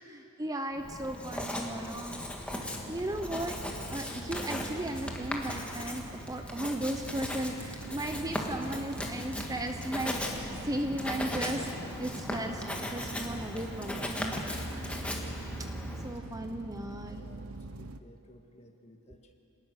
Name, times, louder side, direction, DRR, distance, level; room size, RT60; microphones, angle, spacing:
voice 1, 0.1-2.2 2.5-10.2 10.6-11.7 12.0-14.6 15.0-15.2 16.0-17.2, right 1 dB, 15° right, 5 dB, 0.8 m, -36 dB
Writing, 0.8-16.1, left 1 dB, 5° left, 1.8 m, -38 dB
sound 1, 2.5-18.0, right 3 dB, 75° right, 0.8 m, -45 dB
voice 2, 17.1-17.4 17.8-19.3, equal, 30° left, 3 dB, 1.7 m, -56 dB
28.0 x 19.0 x 6.6 m, 2.9 s
head